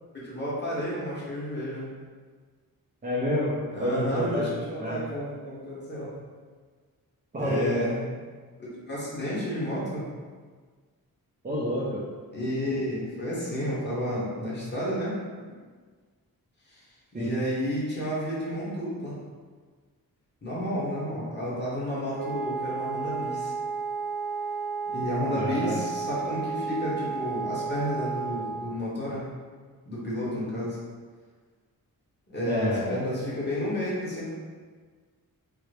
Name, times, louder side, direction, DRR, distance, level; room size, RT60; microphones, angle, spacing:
voice 1, 0.1-1.9 3.7-6.1 7.4-8.0 8.6-10.1 12.3-15.2 16.7-16.8 17.1-19.2 20.4-23.5 24.9-29.3 29.8-30.8 32.3-34.3, equal, 30° left, -8 dB, 1.2 m, -31 dB
voice 2, 3.0-4.5 4.8-5.0 7.3-7.7 11.4-12.0 17.1-17.3 25.3-25.8 32.4-33.0, equal, 25° right, -6 dB, 0.5 m, -28 dB
Wind instrument woodwind instrument, 22.1-28.7, right 5 dB, 65° right, 0.6 m, -32 dB
3.8 x 2.1 x 3.3 m, 1.5 s
wide cardioid pair, 115°, 37 cm